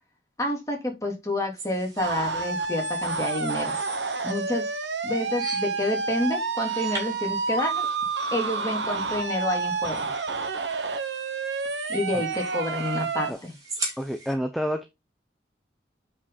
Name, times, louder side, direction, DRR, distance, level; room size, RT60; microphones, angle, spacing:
voice 1, 0.4-3.7 4.2-4.6 5.0-7.9 8.3-10.1 11.9-13.5, left 1 dB, 20° left, 3.1 m, -29 dB
sound 1, 1.6-14.3, right 2 dB, 20° right, 3.9 m, -41 dB
sound 2, 2.0-13.3, right 4 dB, 85° right, 1.3 m, -29 dB
voice 2, 14.0-14.9, equal, ahead, 0.7 m, -29 dB
8.6 x 5.4 x 4.1 m
head